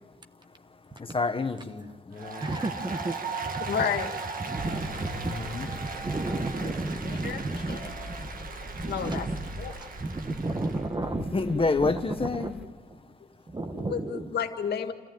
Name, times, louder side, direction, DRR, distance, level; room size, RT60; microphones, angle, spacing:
voice 1, 1.0-2.5 5.2-5.7 11.3-12.5, left 3 dB, 35° left, 1.3 m, -28 dB
Applause, 2.1-10.9, right 4 dB, 60° right, 1.7 m, -38 dB
voice 2, 2.4-3.7 4.4-9.5 9.8-11.4 11.8-12.5 12.9-13.0 13.5-14.3, right 2 dB, 25° right, 1.3 m, -33 dB
voice 3, 3.7-4.2 6.3-6.7 7.0-7.9 8.9-9.3 9.6-9.8 13.7-14.9, left 7 dB, 90° left, 1.8 m, -32 dB
sound 1, 4.6-12.6, equal, 5° right, 3.0 m, -43 dB
27.5 x 14.5 x 9.2 m
cardioid pair, 85°, 17 cm